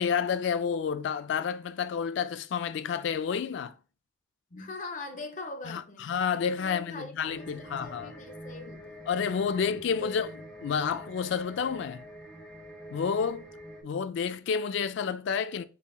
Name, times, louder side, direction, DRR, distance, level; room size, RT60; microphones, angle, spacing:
voice 1, 0.0-3.7 5.7-8.1 9.1-10.3 10.6-12.0 12.9-13.5 13.8-15.6, left 6 dB, 60° left, 0.3 m, -30 dB
voice 2, 4.5-6.1 6.6-9.0 9.5-9.7 10.0-10.1, left 3 dB, 40° left, 0.8 m, -42 dB
sound 1, 7.2-13.8, equal, 5° left, 1.7 m, -46 dB
5.5 x 4.0 x 2.3 m
head